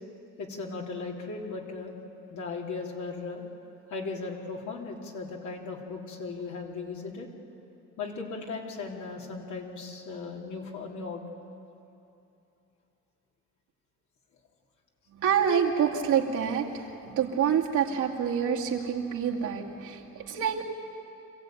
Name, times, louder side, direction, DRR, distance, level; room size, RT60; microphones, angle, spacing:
voice 1, 0.4-1.9 2.3-3.4 3.9-7.3 8.0-11.2, left 4 dB, 75° left, -1 dB, 3.4 m, -37 dB
voice 2, 15.1-20.6, right 8 dB, 80° right, -1 dB, 2.5 m, -27 dB
26.0 x 15.5 x 9.2 m, 2.8 s
cardioid pair, 90°, 30 cm